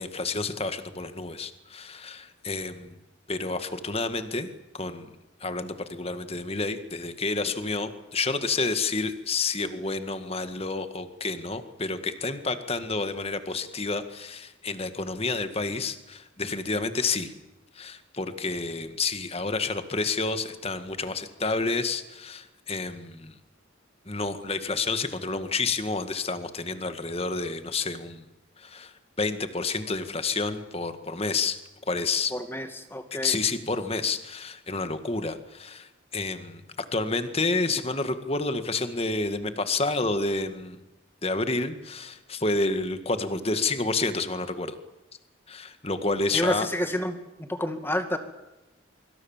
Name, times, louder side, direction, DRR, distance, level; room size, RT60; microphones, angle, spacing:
voice 1, 0.0-3.0 3.3-4.5 4.7-5.1 5.4-17.3 17.8-23.3 24.1-28.2 28.6-28.9 29.2-31.6 31.9-32.3 33.2-36.6 36.9-40.8 41.2-44.8 45.5-46.7, left 3 dB, 30° left, 9 dB, 1.9 m, -29 dB
voice 2, 32.3-33.3 46.3-48.2, left 1 dB, 10° left, 7 dB, 2.1 m, -29 dB
25.0 x 24.5 x 7.4 m, 0.99 s
head